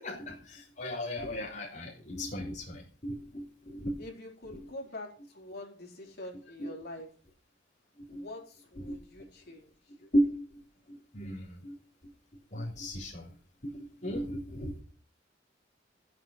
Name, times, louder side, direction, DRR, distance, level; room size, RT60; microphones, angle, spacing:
voice 1, 0.0-4.0 4.5-4.7 6.6-6.7 8.0-8.3 8.8-9.0 10.1-10.6 10.9-11.8 12.0-12.1 12.5-13.3 13.6-14.7, equal, 40° left, -5 dB, 3.7 m, -35 dB
voice 2, 4.0-5.1 5.3-7.1 8.1-9.7, left 1 dB, 55° left, 0 dB, 4.2 m, -45 dB
15.5 x 7.9 x 5.8 m, 0.41 s
head